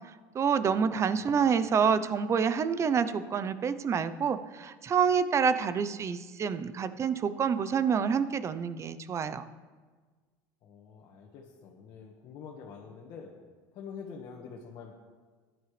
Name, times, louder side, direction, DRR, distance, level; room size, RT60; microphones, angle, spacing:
voice 1, 0.3-9.5, right 6 dB, 30° right, 12 dB, 0.7 m, -27 dB
voice 2, 1.2-1.5 10.6-13.3 13.7-14.9, left 6 dB, 55° left, -1 dB, 1.7 m, -46 dB
15.0 x 11.0 x 3.4 m, 1.4 s
supercardioid pair, 110°, 9 cm